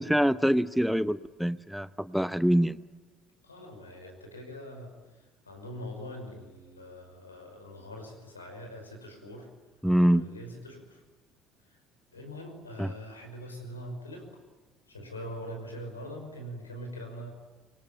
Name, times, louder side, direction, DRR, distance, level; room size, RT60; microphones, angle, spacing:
voice 1, 0.0-2.8 9.8-10.3 12.8-12.9, equal, ahead, 16 dB, 0.8 m, -25 dB
voice 2, 3.4-9.5 10.1-11.0 11.7-11.8 12.1-14.4 14.9-17.3, equal, 85° left, 3 dB, 5.6 m, -43 dB
26.0 x 23.5 x 9.0 m, 1.3 s
figure-of-eight pair, 55°, 0 cm